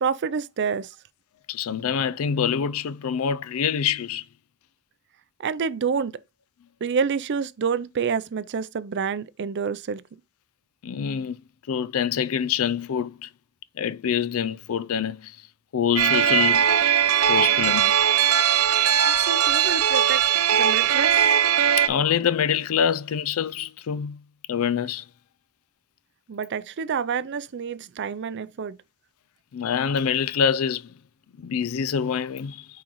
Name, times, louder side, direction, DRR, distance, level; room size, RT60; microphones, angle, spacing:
voice 1, 0.0-0.9 5.4-6.2 6.8-10.0 19.0-20.3 20.6-21.2 26.3-28.8, right 6 dB, 55° right, 0.4 m, -28 dB
voice 2, 1.5-4.2 10.8-11.4 11.7-13.3 13.8-15.4 15.7-17.0 17.3-17.9 18.9-19.5 21.8-24.2 24.5-25.0 29.5-30.9 31.4-32.7, left 7 dB, 75° left, 0.4 m, -26 dB
sound 1, 16.0-21.9, right 9 dB, 85° right, 0.7 m, -20 dB
8.6 x 3.8 x 3.0 m
head